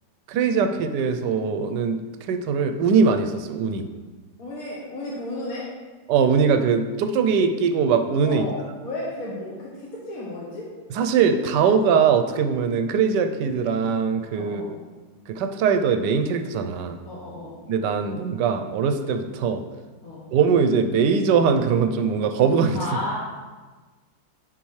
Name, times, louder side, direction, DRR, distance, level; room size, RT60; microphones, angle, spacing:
voice 1, 0.3-2.0 2.3-3.9 6.1-8.5 10.9-14.6 15.3-17.0 17.7-19.6 20.3-22.8, right 6 dB, 75° right, 7 dB, 1.2 m, -21 dB
voice 2, 4.4-5.7 8.2-10.7 14.3-14.7 17.0-17.6 20.0-20.3 22.7-23.1, left 2 dB, 55° left, -6 dB, 1.5 m, -33 dB
10.5 x 4.4 x 3.1 m, 1.3 s
omnidirectional pair, 1.9 m